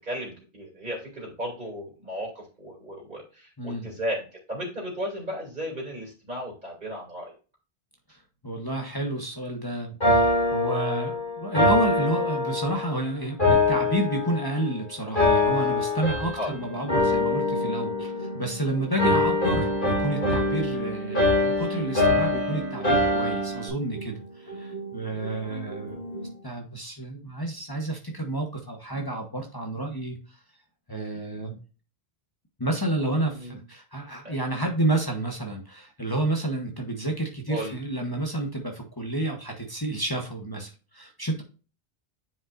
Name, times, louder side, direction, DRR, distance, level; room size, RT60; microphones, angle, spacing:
voice 1, 0.0-7.3 16.4-16.5 25.2-25.5 33.2-33.6 34.2-34.3 37.5-37.7, equal, 50° right, -3 dB, 2.9 m, -35 dB
voice 2, 3.6-3.9 8.4-26.0 26.4-30.2 30.9-31.6 32.6-41.4, right 1 dB, 20° left, 1 dB, 1.2 m, -30 dB
sound 1, 10.0-12.9 13.4-14.7 15.2-16.5 16.9-18.6 19.0-23.7, left 2 dB, 55° left, 3.0 m, -24 dB
sound 2, 16.5-26.5, right 1 dB, 85° left, 3.4 m, -39 dB
9.3 x 5.3 x 2.5 m, 0.35 s
omnidirectional pair, 1.0 m